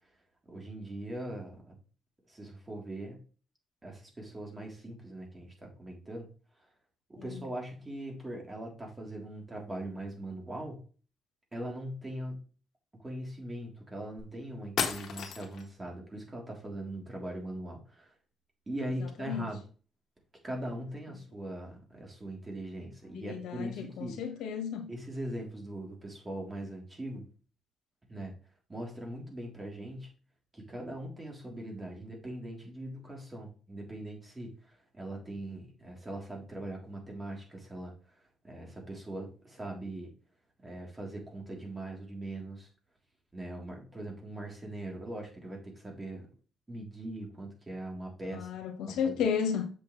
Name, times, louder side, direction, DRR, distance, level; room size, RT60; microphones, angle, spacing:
voice 1, 0.5-1.7 2.3-3.2 3.8-6.3 7.1-10.8 11.5-12.4 12.9-18.1 18.7-19.6 20.4-24.2 24.9-27.3 28.1-28.3 28.7-30.1 30.5-40.1 40.6-42.7 43.3-46.3 46.7-48.5 48.9-49.2, right 1 dB, 20° right, 3.6 m, -41 dB
sound 1, 14.2-14.3 14.8-15.7, left 7 dB, 65° left, 1.9 m, -33 dB
voice 2, 19.0-19.5 23.1-24.9 48.3-49.7, left 7 dB, 85° left, 1.6 m, -33 dB
7.2 x 7.0 x 3.3 m
cardioid pair, 90°, 0 cm